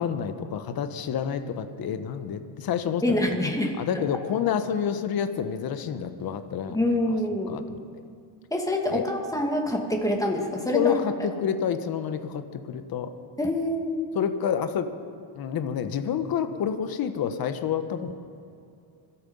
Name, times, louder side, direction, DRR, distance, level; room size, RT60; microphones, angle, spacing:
voice 1, 0.0-3.4 3.8-6.8 7.5-7.8 8.9-9.0 10.7-13.1 14.1-14.9 15.3-18.1, left 8 dB, 45° left, 9 dB, 1.2 m, -28 dB
voice 2, 3.0-3.7 6.7-7.6 8.5-10.9 13.4-14.0, left 1 dB, 5° left, 1 dB, 2.3 m, -26 dB
25.5 x 9.0 x 5.5 m, 2.5 s
cardioid pair, 120°, 49 cm